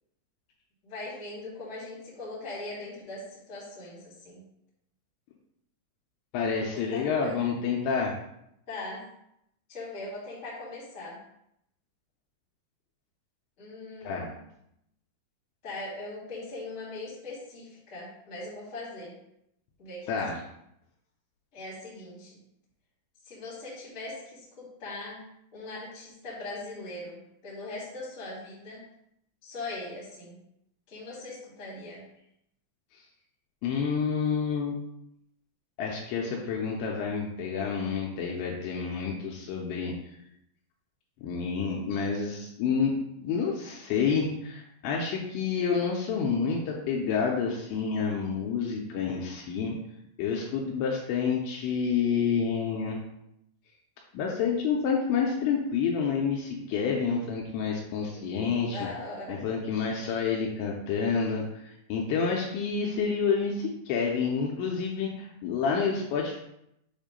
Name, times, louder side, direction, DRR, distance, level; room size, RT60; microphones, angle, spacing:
voice 1, 0.8-4.4 6.9-7.5 8.7-9.1 9.7-11.2 13.6-14.3 15.6-19.2 19.8-20.1 21.5-22.4 23.2-25.2 25.5-28.8 29.4-30.4 30.9-32.0 58.1-59.4, left 2 dB, 35° left, -7 dB, 1.1 m, -40 dB
voice 2, 6.3-8.1 14.0-14.3 20.1-20.4 33.6-34.8 35.8-39.9 41.2-42.9 43.2-49.8 50.2-53.0 54.1-58.8 59.3-66.4, left 6 dB, 80° left, -1 dB, 2.7 m, -29 dB
7.4 x 2.7 x 5.1 m, 0.78 s
omnidirectional pair, 5.7 m